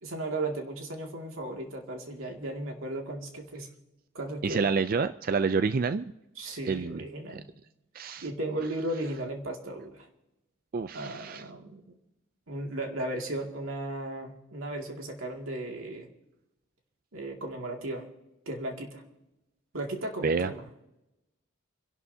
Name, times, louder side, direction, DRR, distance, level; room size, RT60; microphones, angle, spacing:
voice 1, 0.0-3.7 4.1-4.7 6.4-7.5 8.2-10.1 10.9-11.9 12.5-16.1 17.1-18.0 18.5-19.0 19.7-20.9, right 1 dB, 90° right, 2 dB, 2.2 m, -35 dB
voice 2, 4.4-6.1 6.6-7.0 7.3-7.4 7.9-8.3 10.7-11.4 20.2-20.5, right 5 dB, 45° right, 11 dB, 0.4 m, -28 dB
27.5 x 11.5 x 2.8 m, 0.95 s
head